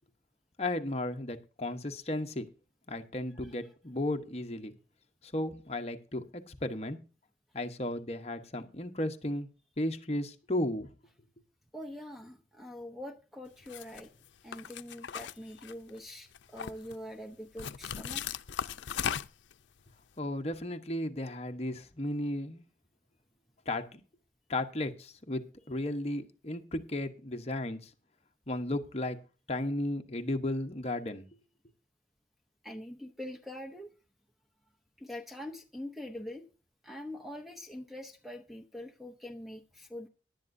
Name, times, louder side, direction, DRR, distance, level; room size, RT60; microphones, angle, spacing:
voice 1, 0.6-2.5 2.9-4.7 5.2-7.0 7.5-9.5 9.8-10.9 20.2-22.6 23.7-24.0 24.5-25.4 25.7-27.9 28.5-29.2 29.5-31.2, left 1 dB, 35° left, 5 dB, 1.0 m, -34 dB
voice 2, 11.7-14.1 14.4-18.2 32.6-33.9 35.0-36.5 36.8-40.1, left 1 dB, ahead, 3 dB, 0.7 m, -44 dB
sound 1, 13.7-14.0 14.5-16.0 16.3-17.0 17.6-19.5, left 8 dB, 80° left, 0.5 m, -37 dB
16.0 x 11.0 x 2.6 m, 0.35 s
head